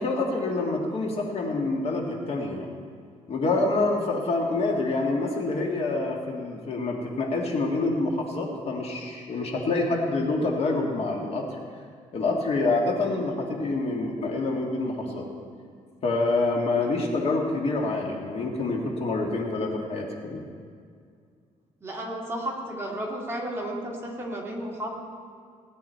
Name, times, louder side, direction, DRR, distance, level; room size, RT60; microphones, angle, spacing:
voice 1, 0.0-2.7 3.3-11.6 12.1-15.3 16.0-20.4, left 2 dB, 50° left, 0 dB, 1.9 m, -27 dB
voice 2, 21.8-24.9, right 1 dB, 20° right, -3 dB, 2.3 m, -33 dB
18.5 x 9.8 x 4.5 m, 2.2 s
cardioid pair, 145°, 13 cm